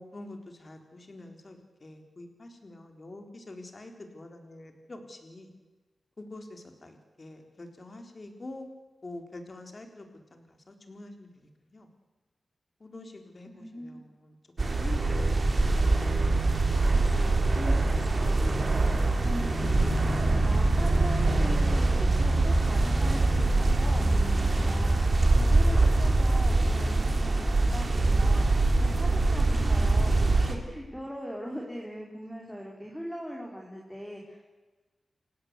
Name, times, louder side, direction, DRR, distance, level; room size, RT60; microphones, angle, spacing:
voice 1, 0.0-5.5 6.2-8.7 9.0-10.0 10.3-11.3 11.7-11.9 12.8-14.0 14.6-15.3, left 2 dB, 35° left, 5 dB, 4.0 m, -45 dB
voice 2, 13.5-14.0 16.9-34.5, equal, ahead, -1 dB, 4.5 m, -41 dB
sound 1, 14.6-30.5, right 2 dB, 40° right, 3.6 m, -24 dB
28.0 x 16.5 x 8.2 m, 1.2 s
wide cardioid pair, 115°, 0 cm